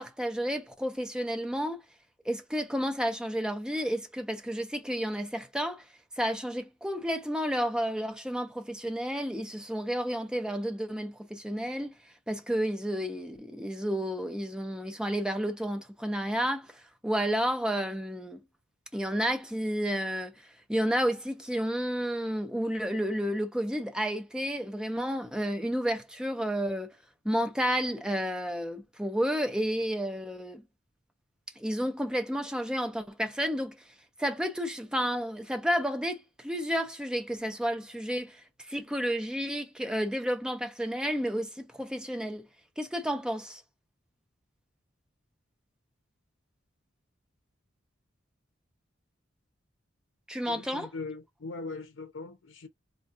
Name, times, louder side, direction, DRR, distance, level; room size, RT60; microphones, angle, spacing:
voice 1, 0.0-1.8 2.3-5.8 6.2-11.9 12.3-16.7 17.0-18.4 18.9-20.3 20.7-26.9 27.2-30.6 31.6-33.8 34.2-38.4 38.7-42.5 42.8-43.6 50.3-50.9, equal, 5° right, 0.5 m, -31 dB
voice 2, 50.3-52.7, left 3 dB, 70° left, 0.6 m, -40 dB
4.3 x 2.3 x 2.7 m
head